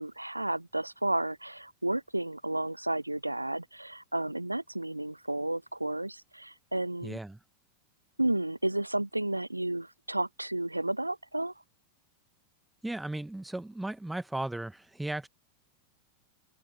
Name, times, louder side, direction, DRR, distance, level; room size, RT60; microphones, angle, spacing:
voice 1, 0.0-7.2 8.2-11.5, right 1 dB, 85° right, 0.4 m, -32 dB
voice 2, 7.0-7.4 12.8-15.3, right 1 dB, 5° right, 1.3 m, -36 dB
open air
figure-of-eight pair, 90°, 0 cm